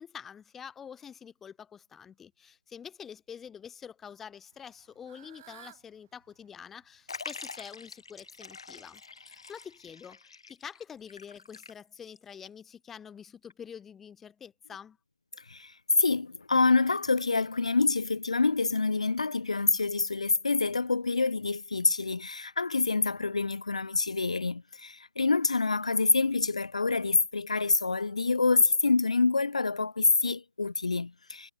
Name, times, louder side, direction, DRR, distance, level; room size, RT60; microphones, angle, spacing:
voice 1, 0.0-15.0, left 7 dB, 5° left, 2.2 m, -46 dB
Fowl / Bird, 4.5-9.8, right 13 dB, 20° right, 3.1 m, -58 dB
Liquid, 7.1-12.2 12.5-12.6 13.5-13.6, left 4 dB, 55° left, 3.0 m, -45 dB
voice 2, 15.4-31.5, left 3 dB, 80° left, 0.5 m, -26 dB
hypercardioid pair, 170°, 3 cm